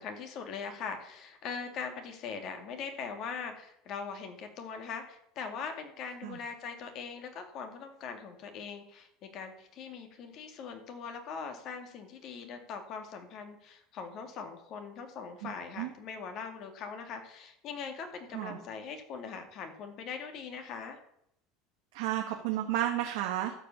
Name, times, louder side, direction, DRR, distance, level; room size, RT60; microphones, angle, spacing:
voice 1, 0.0-21.0, left 5 dB, 50° left, 6 dB, 2.2 m, -41 dB
voice 2, 21.9-23.5, right 12 dB, 80° right, 2 dB, 1.3 m, -32 dB
13.0 x 5.1 x 7.0 m, 0.76 s
supercardioid pair, 115°, 0 cm